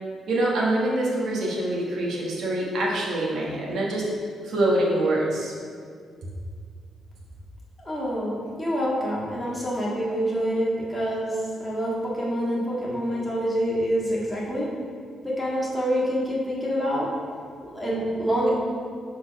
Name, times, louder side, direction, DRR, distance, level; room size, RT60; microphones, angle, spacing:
voice 1, 0.3-4.1 4.4-5.5, right 1 dB, 65° right, -4 dB, 1.4 m, -25 dB
voice 2, 7.8-14.7 15.2-17.1 17.6-18.5, equal, 5° left, -7 dB, 1.6 m, -26 dB
5.2 x 4.1 x 5.7 m, 2.1 s
cardioid pair, 145°, 0 cm